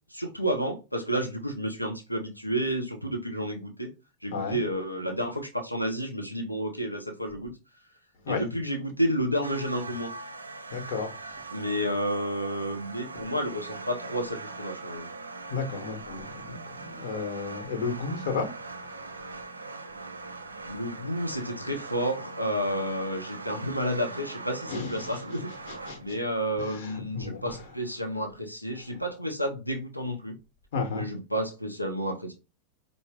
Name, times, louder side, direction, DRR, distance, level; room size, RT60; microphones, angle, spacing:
voice 1, 0.1-3.9 4.2-7.5 8.3-10.1 11.5-15.1 20.7-25.5 26.0-30.3 30.9-32.3, equal, 90° left, 0.7 m, -31 dB
sound 1, 9.4-28.2, right 3 dB, 80° right, 0.3 m, -42 dB
voice 2, 10.7-11.1 15.5-18.5 24.7-25.2 25.7-26.2 26.6-27.6 30.7-31.1, left 4 dB, 55° left, 1.0 m, -33 dB
4.6 x 2.0 x 3.5 m
figure-of-eight pair, 90°, 0 cm